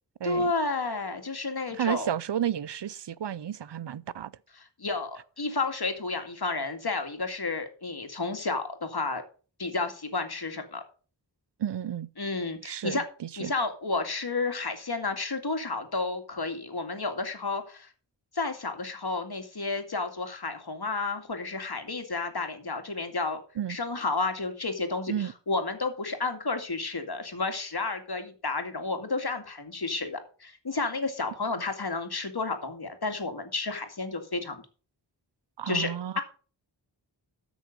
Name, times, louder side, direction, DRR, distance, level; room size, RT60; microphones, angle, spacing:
voice 1, 0.2-2.1 4.8-9.2 9.6-10.8 12.2-13.0 13.4-17.9 18.3-23.4 23.7-34.6 35.7-35.9 36.2-36.3, left 3 dB, 60° left, 2.3 m, -31 dB
voice 2, 1.7-4.3 11.6-12.1 12.6-13.5 23.6-23.8 25.1-25.3 35.6-36.2, right 10 dB, 70° right, 0.6 m, -32 dB
13.5 x 6.3 x 5.3 m
wide cardioid pair, 45°, 44 cm